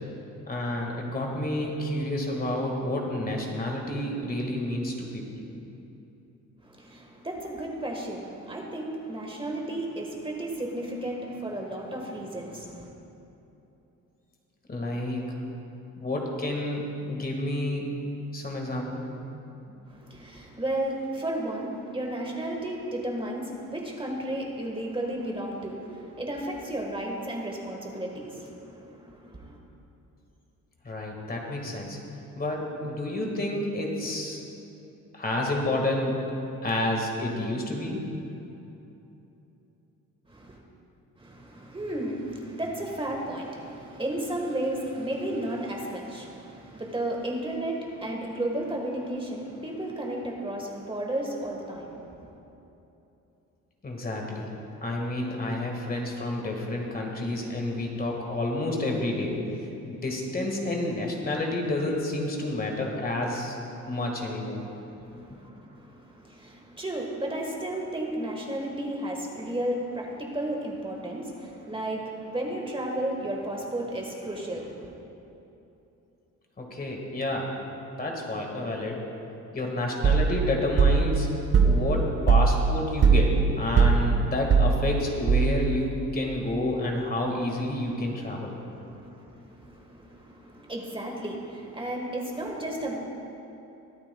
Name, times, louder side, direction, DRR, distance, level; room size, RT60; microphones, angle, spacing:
voice 1, 0.5-5.4 14.7-15.4 16.0-17.9 18.3-19.0 30.8-32.0 32.4-34.4 35.1-36.2 36.6-38.0 53.8-54.5 54.8-63.6 63.9-64.6 76.6-77.5 78.0-79.0 79.5-81.3 81.6-88.5, left 1 dB, 30° left, 0 dB, 1.7 m, -29 dB
voice 2, 6.6-12.9 19.9-29.6 40.3-40.6 41.2-52.4 65.0-74.9 88.6-93.0, right 1 dB, 15° right, 0 dB, 1.4 m, -33 dB
sound 1, 80.0-85.8, right 5 dB, 55° right, 1.1 m, -21 dB
22.0 x 8.7 x 2.3 m, 2.9 s
cardioid pair, 90°, 30 cm